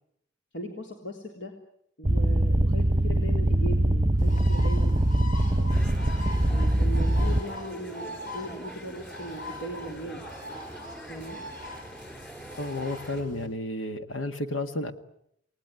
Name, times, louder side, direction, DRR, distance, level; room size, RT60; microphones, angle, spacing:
voice 1, 0.5-1.5 2.0-5.0 5.6-6.0 6.5-10.2 11.1-11.4, right 1 dB, 70° left, 2 dB, 3.6 m, -38 dB
sound 1, 2.0-7.4, right 1 dB, 20° right, 1.0 m, -23 dB
Bird, 4.2-13.5, left 1 dB, 45° left, 7.9 m, -42 dB
sound 2, 5.7-13.2, equal, 10° left, 3.9 m, -44 dB
voice 2, 12.6-14.9, left 2 dB, 85° left, 7 dB, 1.9 m, -32 dB
29.5 x 19.0 x 9.7 m, 0.76 s
head